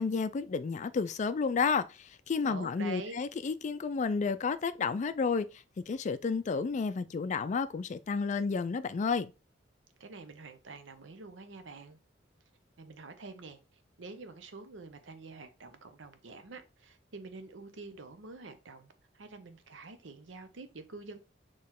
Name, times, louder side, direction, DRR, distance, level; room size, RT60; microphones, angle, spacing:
voice 1, 0.0-5.5 5.8-9.3, left 5 dB, 40° left, 0.3 m, -31 dB
voice 2, 2.5-3.2 10.0-12.0 12.8-21.2, right 3 dB, 90° right, 0.7 m, -47 dB
4.5 x 3.0 x 3.6 m
head